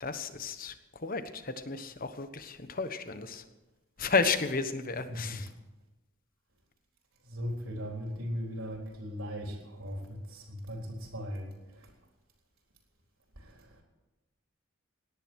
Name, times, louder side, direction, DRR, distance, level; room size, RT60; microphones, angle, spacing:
voice 1, 0.0-3.4 4.0-5.5, left 4 dB, 45° left, 10 dB, 1.2 m, -32 dB
voice 2, 7.3-10.8 11.1-11.5, equal, 85° right, 1 dB, 4.0 m, -37 dB
18.0 x 10.5 x 6.4 m, 1.0 s
head